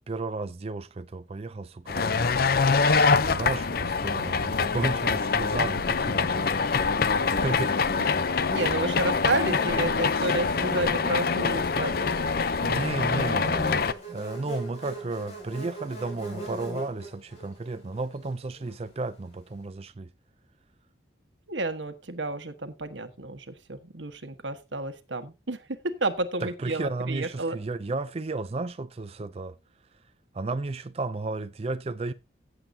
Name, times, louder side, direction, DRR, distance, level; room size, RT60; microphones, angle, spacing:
voice 1, 0.0-2.5 3.2-7.8 12.6-20.1 26.4-29.6 30.3-32.1, right 3 dB, 35° right, 0.4 m, -33 dB
sound 1, 1.9-13.9, left 4 dB, 55° left, 0.6 m, -25 dB
voice 2, 8.3-11.9 21.5-27.6, right 2 dB, 90° right, 1.4 m, -31 dB
Buzz, 8.9-19.3, right 2 dB, 35° left, 6.2 m, -43 dB
16.0 x 7.8 x 2.7 m
head